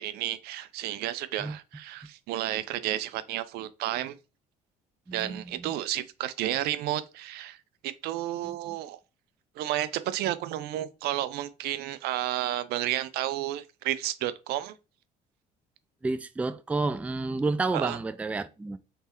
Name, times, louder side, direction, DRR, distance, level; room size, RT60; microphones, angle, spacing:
voice 1, 0.0-4.1 5.1-7.6 7.8-9.0 9.6-14.8 17.7-18.0, right 13 dB, 70° right, 0.4 m, -31 dB
voice 2, 5.1-5.7 8.4-8.5 16.0-18.8, right 3 dB, 10° right, 0.3 m, -30 dB
3.3 x 3.3 x 2.9 m
supercardioid pair, 85°, 17 cm